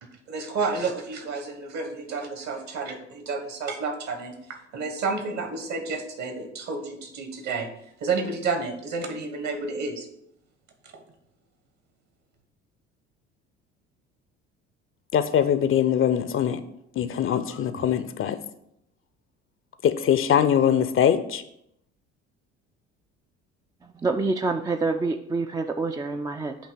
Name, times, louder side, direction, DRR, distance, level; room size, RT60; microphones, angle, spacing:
voice 1, 0.3-4.4 4.7-7.7 8.0-10.1 10.9-11.0, right 4 dB, 55° right, 6 dB, 1.4 m, -30 dB
voice 2, 15.1-16.6 17.0-18.4 19.8-21.4, left 9 dB, 40° left, 12 dB, 0.6 m, -22 dB
voice 3, 23.8-26.6, right 3 dB, 10° right, 6 dB, 0.3 m, -27 dB
8.1 x 2.9 x 5.7 m, 0.75 s
hypercardioid pair, 55°, 34 cm